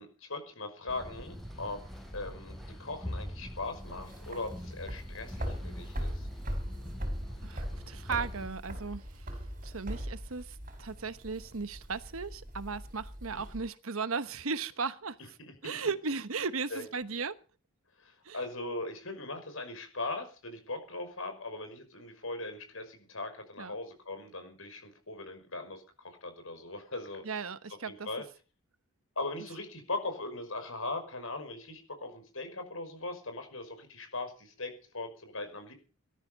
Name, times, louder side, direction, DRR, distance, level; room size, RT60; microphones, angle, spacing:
voice 1, 0.0-1.8 2.1-6.3 13.3-13.5 15.6-15.8 16.7-16.8 18.0-27.3 27.9-28.2 29.2-35.7, left 2 dB, 75° left, 7 dB, 5.6 m, -40 dB
sound 1, 0.9-8.5, equal, ahead, 6.2 m, -44 dB
sound 2, 3.7-13.6, equal, 40° right, 4.6 m, -40 dB
voice 2, 7.4-9.3 9.6-15.2 15.6-17.3 18.2-18.4 23.6-23.7 27.2-28.1, right 4 dB, 80° right, 13 dB, 1.1 m, -36 dB
18.5 x 13.5 x 5.3 m, 0.37 s
head